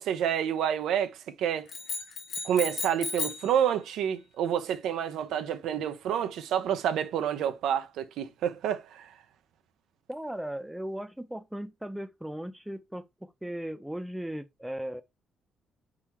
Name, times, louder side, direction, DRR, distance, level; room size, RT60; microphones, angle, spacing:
voice 1, 0.0-1.7 2.4-9.1, right 9 dB, 80° right, 0.5 m, -29 dB
sound 1, 1.7-3.5, left 4 dB, 75° left, 1.4 m, -35 dB
voice 2, 10.1-15.0, right 1 dB, 5° right, 0.5 m, -37 dB
4.3 x 3.7 x 3.0 m
cardioid pair, 90°, 0 cm